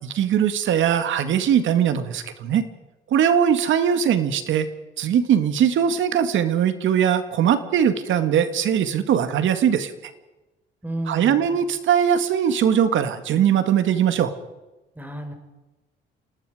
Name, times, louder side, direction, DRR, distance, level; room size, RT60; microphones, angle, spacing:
voice 1, 0.0-2.6 3.1-4.7 5.0-10.1 11.1-14.3, right 8 dB, 80° right, 10 dB, 2.1 m, -20 dB
voice 2, 10.8-11.6 15.0-15.3, right 1 dB, 10° right, 6 dB, 4.8 m, -32 dB
28.0 x 19.0 x 5.0 m, 1.1 s
cardioid pair, 90°, 20 cm